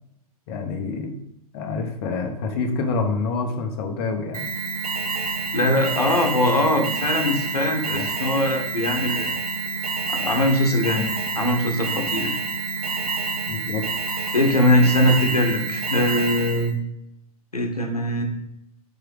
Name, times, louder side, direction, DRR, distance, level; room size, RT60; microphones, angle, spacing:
voice 1, 0.5-1.2 1.5-4.5 7.8-8.1 13.5-13.9, left 4 dB, 40° left, 3 dB, 1.0 m, -27 dB
Alarm, 4.3-16.7, right 4 dB, 75° right, 1.1 m, -28 dB
voice 2, 5.5-9.4 10.1-11.1 11.3-12.4 14.3-16.7 17.5-18.2, left 1 dB, 85° left, 3 dB, 1.0 m, -21 dB
4.9 x 4.8 x 4.7 m, 0.81 s
figure-of-eight pair, 105°, 19 cm